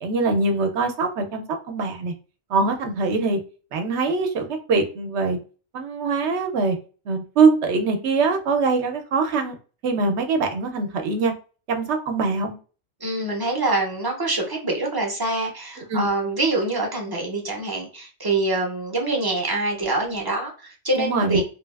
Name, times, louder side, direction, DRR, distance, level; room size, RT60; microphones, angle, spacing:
voice 1, 0.0-2.1 2.5-3.4 3.7-5.4 5.7-6.8 7.1-9.6 9.8-11.3 11.7-12.6 15.9-16.1 21.0-21.4, right 4 dB, 70° right, 5 dB, 0.9 m, -23 dB
voice 2, 13.0-21.4, right 2 dB, 25° right, 0 dB, 0.5 m, -25 dB
3.2 x 2.3 x 2.3 m, 0.36 s
omnidirectional pair, 1.2 m